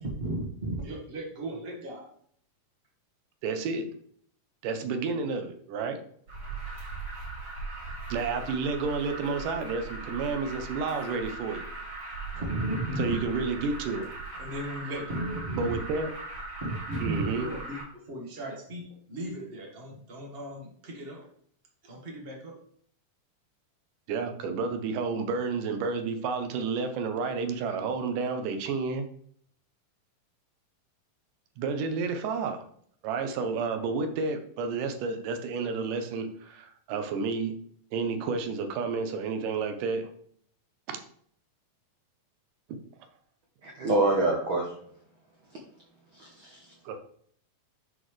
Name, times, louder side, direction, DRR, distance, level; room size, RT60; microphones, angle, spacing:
voice 1, 0.0-2.1 12.3-13.2 14.4-15.7 16.6-17.8 18.1-21.2 21.8-22.6, right 1 dB, 30° right, -1 dB, 1.0 m, -35 dB
voice 2, 3.4-3.9 4.6-6.0 8.1-11.7 13.0-14.1 15.6-16.1 17.0-17.5 24.1-29.1 31.6-32.6 33.0-37.5 37.9-40.1 40.9-41.0 46.9-47.0, right 4 dB, 90° right, 7 dB, 2.4 m, -30 dB
Alarm, 6.3-17.8, right 3 dB, 55° right, 3.4 m, -39 dB
voice 3, 43.6-44.8 46.1-46.7, right 2 dB, 70° right, 0 dB, 1.2 m, -27 dB
11.0 x 4.1 x 3.2 m, 0.62 s
omnidirectional pair, 3.6 m